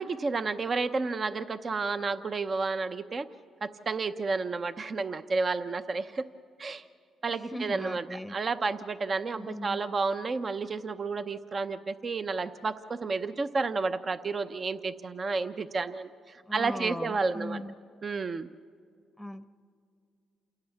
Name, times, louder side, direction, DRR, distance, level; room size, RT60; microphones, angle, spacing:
voice 1, 0.0-3.3 3.6-6.3 6.6-6.8 7.2-8.0 8.3-17.6 18.0-18.5, right 4 dB, 40° right, 10 dB, 0.7 m, -31 dB
voice 2, 7.5-8.3 9.4-9.8 16.5-17.7 19.2-19.5, equal, ahead, 13 dB, 0.9 m, -38 dB
28.0 x 17.5 x 7.1 m, 2.3 s
cardioid pair, 90°, 0 cm